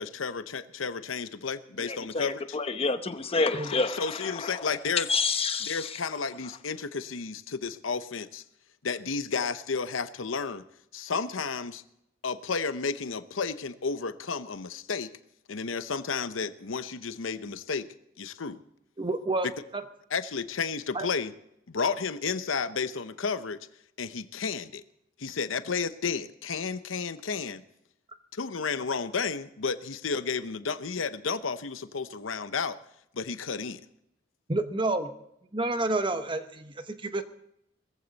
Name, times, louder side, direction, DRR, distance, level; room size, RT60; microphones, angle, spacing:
voice 1, 0.0-2.6 3.6-5.1 5.6-8.4 8.8-10.6 10.9-11.8 12.2-15.1 15.5-17.9 18.2-18.6 20.1-21.3 21.7-23.6 24.0-24.8 25.2-27.6 28.3-32.8 33.1-33.8, left 5 dB, 90° left, 0.8 m, -32 dB
voice 2, 1.8-4.0 4.4-4.5 5.1-5.8, left 3 dB, 30° left, 0.9 m, -28 dB
voice 3, 19.0-19.5 20.9-21.1 34.5-35.1 35.5-37.2, right 2 dB, 25° right, 1.1 m, -29 dB
20.5 x 15.0 x 4.1 m
head